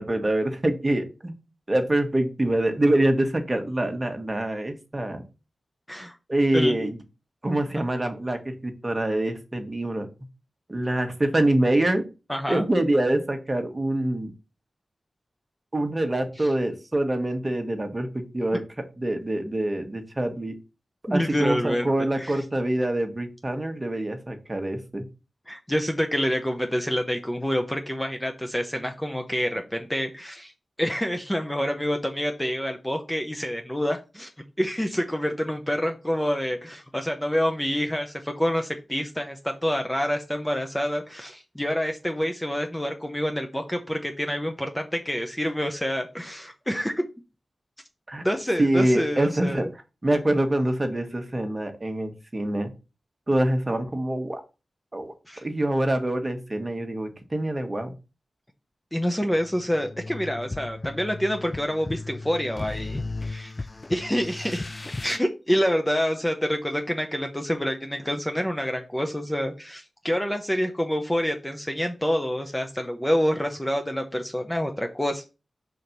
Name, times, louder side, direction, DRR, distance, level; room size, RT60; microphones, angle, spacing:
voice 1, 0.0-1.3 1.7-5.2 6.3-7.0 7.4-10.1 10.7-12.0 12.5-14.3 15.7-18.6 19.0-20.5 21.1-25.0 48.1-48.2 48.6-49.6 50.0-52.7 53.3-54.4 54.9-55.1 55.4-57.9, right 1 dB, 25° right, 5 dB, 1.3 m, -25 dB
voice 2, 6.5-6.9 12.3-12.6 16.4-16.5 21.1-21.9 22.2-22.4 25.5-30.5 30.8-34.3 34.6-47.0 48.2-49.7 55.3-55.4 58.9-63.5 63.9-64.7 65.0-75.4, equal, 10° left, 5 dB, 0.7 m, -27 dB
sound 1, 59.4-65.2, left 2 dB, 30° left, 0.3 m, -36 dB
5.0 x 4.0 x 5.9 m, 0.29 s
wide cardioid pair, 85°, 0 cm